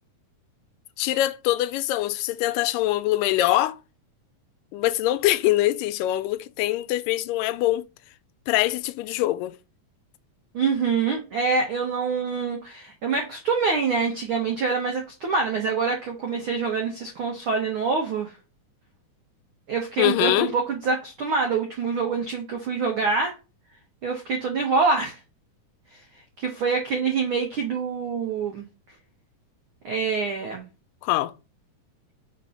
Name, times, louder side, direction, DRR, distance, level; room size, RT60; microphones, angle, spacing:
voice 1, 1.0-3.8 4.7-7.9 8.5-9.5 20.0-20.5 31.0-31.3, left 15 dB, 90° left, 2.2 m, -23 dB
voice 2, 10.5-18.3 19.7-23.3 24.0-25.2 25.9-26.0 26.4-28.6 29.8-30.7, right 4 dB, 80° right, 1.1 m, -25 dB
4.4 x 4.1 x 5.4 m
omnidirectional pair, 3.8 m